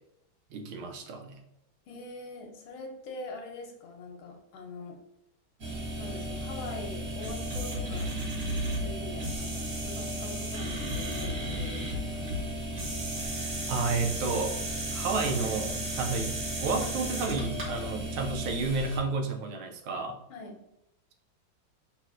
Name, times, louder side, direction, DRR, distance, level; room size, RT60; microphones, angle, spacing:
voice 1, 0.5-1.4 13.7-14.5 14.9-20.2, right 4 dB, 80° right, 3 dB, 1.5 m, -31 dB
voice 2, 1.9-5.0 6.0-8.1 8.5-12.6 20.3-20.6, left 3 dB, 75° left, 2 dB, 1.5 m, -43 dB
sound 1, 5.6-19.0, right 1 dB, 45° right, 1.5 m, -34 dB
5.8 x 3.1 x 2.5 m, 0.81 s
omnidirectional pair, 2.3 m